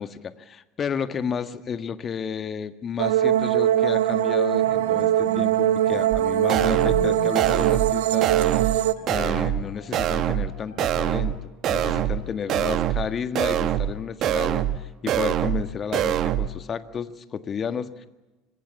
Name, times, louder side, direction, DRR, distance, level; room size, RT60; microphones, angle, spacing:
voice 1, 0.0-18.1, left 7 dB, 35° left, 11 dB, 1.7 m, -32 dB
sound 1, 3.0-8.9, right 12 dB, 70° right, 1.0 m, -21 dB
Bowed string instrument, 4.6-7.7 8.0-8.2 8.6-8.7 9.0-10.9 11.2-12.0 12.6-13.2, left 4 dB, 70° left, 6.0 m, -42 dB
sound 2, 6.1-6.2 6.5-7.1 7.3-7.9 8.2-8.8 9.1-9.6 9.9-10.5 10.8-11.3 11.6-12.2 12.5-13.1 13.3-13.9 14.2-14.8 15.1-15.6 15.9-16.5, right 11 dB, 45° right, 1.5 m, -24 dB
26.0 x 23.5 x 7.1 m, 1.1 s
figure-of-eight pair, 75°, 0 cm